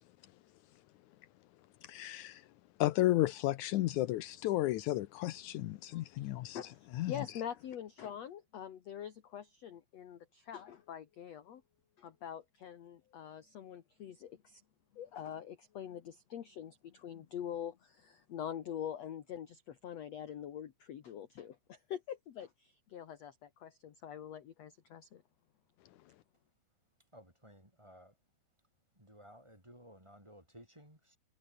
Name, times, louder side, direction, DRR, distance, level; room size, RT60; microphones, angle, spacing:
voice 1, 1.9-2.4 2.8-6.6 7.0-7.1, left 15 dB, 90° left, 1.7 m, -32 dB
voice 2, 5.9-11.6 12.0-14.6 14.9-25.2, left 9 dB, 55° left, 2.2 m, -45 dB
voice 3, 27.1-28.2 28.9-31.2, equal, 5° right, 6.9 m, -57 dB
omnidirectional pair, 4.5 m